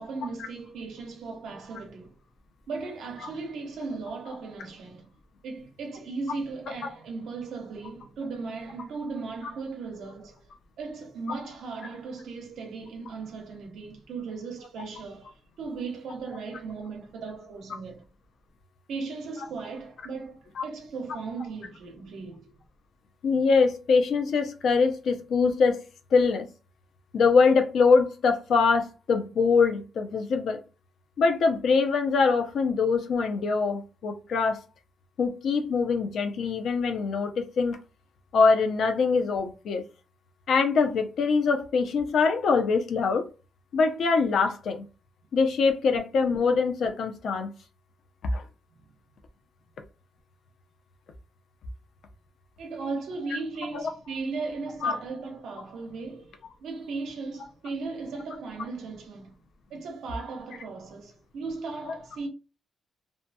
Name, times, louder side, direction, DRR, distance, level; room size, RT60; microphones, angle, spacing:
voice 1, 0.0-2.2 2.7-5.1 5.4-10.5 10.8-18.0 18.9-22.5 52.6-59.3 59.7-62.3, right 4 dB, 80° right, 0.8 m, -37 dB
voice 2, 23.2-25.8 26.1-26.5 27.1-30.6 31.2-34.6 35.2-37.8 38.3-39.8 40.5-43.3 43.7-44.8 45.3-47.5 48.3-48.4 53.7-53.8 54.8-55.0 61.9-62.0, left 4 dB, 60° left, 0.5 m, -23 dB
2.7 x 2.2 x 2.6 m
wide cardioid pair, 180°, 0 cm